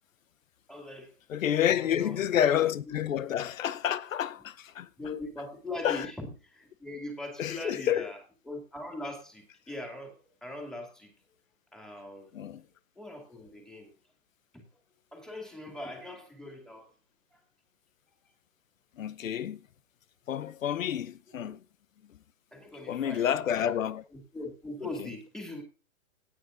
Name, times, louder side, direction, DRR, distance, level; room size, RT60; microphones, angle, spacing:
voice 1, 0.7-1.2 1.7-2.2 2.9-3.0 5.0-8.2 8.4-11.1 11.7-12.4 13.0-13.9 14.5-14.7 15.1-16.9 17.3-17.4 21.3-21.5 22.5-23.8 24.1-25.6, left 2 dB, ahead, 2.4 m, -41 dB
voice 2, 1.3-4.9 5.8-6.1 7.4-8.1 12.3-12.6 19.0-19.7 20.3-21.6 22.1-22.2 22.9-24.0 25.0-25.1, left 10 dB, 80° left, 0.9 m, -29 dB
17.5 x 9.2 x 2.5 m
hypercardioid pair, 145°, 40 cm